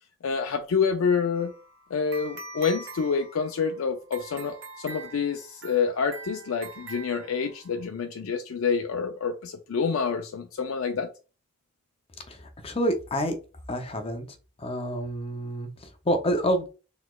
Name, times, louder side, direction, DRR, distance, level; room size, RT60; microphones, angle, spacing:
voice 1, 0.2-1.5 1.9-11.1, left 5 dB, 85° left, 0.4 m, -27 dB
sound 1, 1.3-7.9, right 2 dB, 60° right, 0.8 m, -44 dB
voice 2, 12.3-13.4 13.7-14.2 14.6-16.7, equal, 25° left, 0.6 m, -28 dB
4.0 x 3.1 x 2.3 m
head